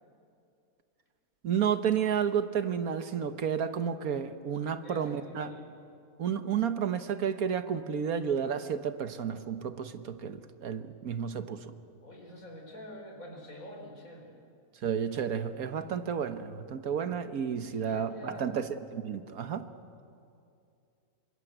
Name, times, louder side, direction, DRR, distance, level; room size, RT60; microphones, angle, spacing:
voice 1, 1.4-5.5 6.2-11.7 14.8-19.7, right 7 dB, 80° right, 10 dB, 1.6 m, -31 dB
voice 2, 4.7-5.7 12.0-14.4 17.6-18.6, equal, 70° left, 1 dB, 5.0 m, -46 dB
27.0 x 24.0 x 8.1 m, 2.5 s
omnidirectional pair, 1.5 m